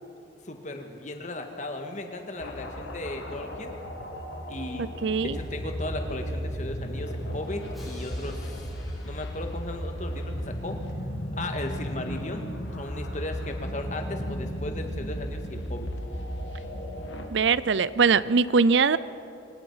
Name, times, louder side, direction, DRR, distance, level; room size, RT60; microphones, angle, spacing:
voice 1, 0.5-3.7 4.5-4.9 5.2-8.7 9.0-10.8 11.3-15.9, left 1 dB, 40° left, 4 dB, 1.9 m, -36 dB
sound 1, 2.4-17.3, equal, 80° left, 2.1 m, -35 dB
voice 2, 5.0-5.4 17.3-19.0, right 5 dB, 70° right, 17 dB, 0.5 m, -21 dB
Drum, 5.3-10.2, equal, ahead, 4.8 m, -47 dB
25.5 x 18.5 x 5.7 m, 2.7 s
head